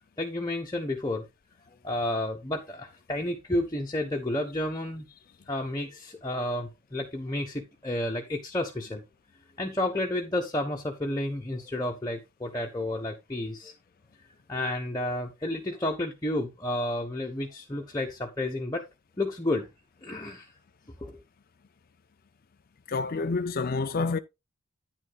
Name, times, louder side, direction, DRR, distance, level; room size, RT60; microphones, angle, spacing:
voice 1, 0.2-1.3 1.8-5.1 5.5-9.0 9.6-13.7 14.5-18.8 19.2-19.7 20.0-20.5 21.0-21.2, left 1 dB, 15° left, 1.1 m, -31 dB
voice 2, 22.9-24.2, left 4 dB, 40° left, 0.5 m, -28 dB
9.9 x 9.7 x 2.3 m
head